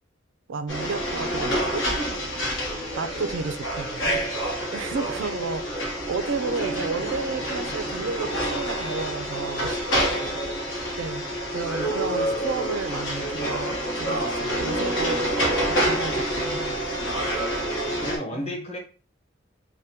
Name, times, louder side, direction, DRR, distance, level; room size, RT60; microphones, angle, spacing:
voice 1, 0.5-1.9 3.0-4.3 4.7-9.8 10.1-10.3 11.0-11.3 11.5-15.3 15.7-16.8 18.3-18.5, right 4 dB, 75° right, 0.4 m, -32 dB
sound 1, 0.7-18.2, equal, 75° left, 1.0 m, -27 dB
voice 2, 17.2-17.7 18.0-18.8, equal, 35° left, 0.9 m, -35 dB
3.4 x 2.1 x 2.8 m
head